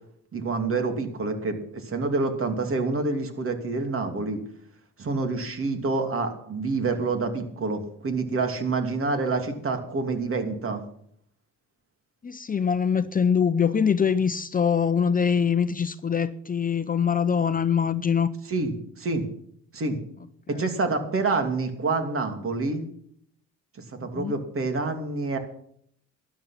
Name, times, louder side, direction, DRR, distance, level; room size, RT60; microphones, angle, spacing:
voice 1, 0.3-4.4 5.0-10.8 18.5-19.2 19.7-20.0 20.5-22.8 23.9-25.4, right 3 dB, 45° right, 2.8 m, -27 dB
voice 2, 12.2-18.3 20.5-20.6 24.0-24.4, left 7 dB, 30° left, 0.7 m, -23 dB
12.5 x 11.0 x 5.9 m
cardioid pair, 90°, 30 cm